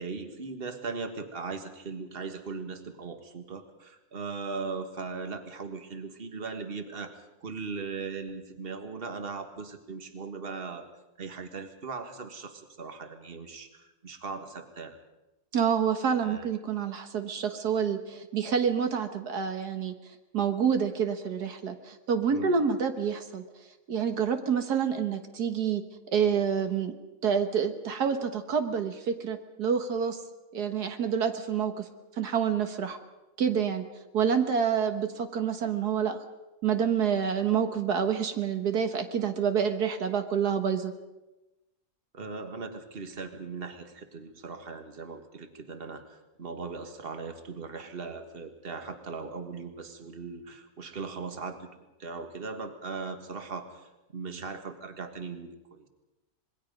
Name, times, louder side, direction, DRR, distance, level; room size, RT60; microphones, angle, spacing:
voice 1, 0.0-10.9 11.2-15.0 16.2-16.5 22.3-22.6 42.1-55.9, right 4 dB, 40° right, 7 dB, 1.8 m, -39 dB
voice 2, 15.5-19.9 20.3-23.4 23.9-25.8 26.1-26.9 27.2-30.2 30.5-31.9 32.2-33.0 33.4-33.8 34.1-36.2 36.6-40.9, right 7 dB, 85° right, 7 dB, 1.9 m, -27 dB
26.0 x 21.5 x 5.3 m, 1.0 s
omnidirectional pair, 1.6 m